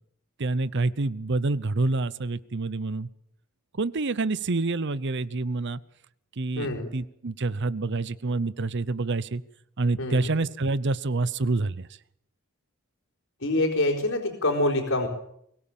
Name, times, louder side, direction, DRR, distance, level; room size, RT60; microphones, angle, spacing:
voice 1, 0.4-3.1 3.8-5.8 6.4-9.4 9.8-11.9, right 3 dB, 55° right, 19 dB, 0.8 m, -27 dB
voice 2, 6.6-6.9 10.0-10.3 13.4-15.1, left 1 dB, 70° left, -3 dB, 4.3 m, -25 dB
23.0 x 17.0 x 7.3 m, 0.71 s
head